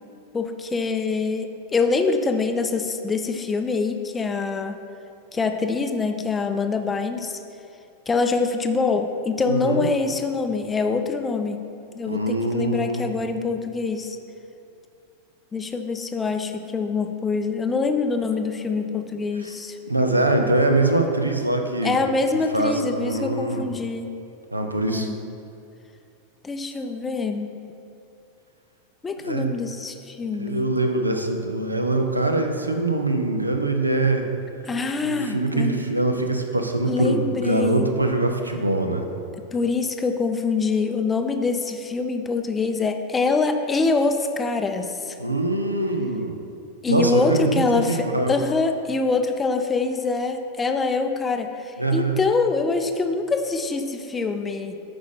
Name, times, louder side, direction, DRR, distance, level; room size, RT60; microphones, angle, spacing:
voice 1, 0.3-4.8 5.3-7.4 8.1-11.6 11.9-14.2 15.5-19.8 21.8-24.1 24.9-25.2 26.4-27.6 29.0-30.8 34.7-35.8 36.8-37.9 39.5-45.2 46.8-54.8, left 4 dB, 15° left, 6 dB, 0.4 m, -25 dB
voice 2, 9.5-9.9 12.0-13.0 19.4-19.5 19.9-22.0 22.5-23.7 24.5-25.1 29.2-29.6 30.3-34.3 35.0-39.1 45.2-46.3 46.9-48.4 51.8-52.2, right 2 dB, 85° right, 5 dB, 0.6 m, -23 dB
8.4 x 5.1 x 3.7 m, 2.7 s
figure-of-eight pair, 90°, 0 cm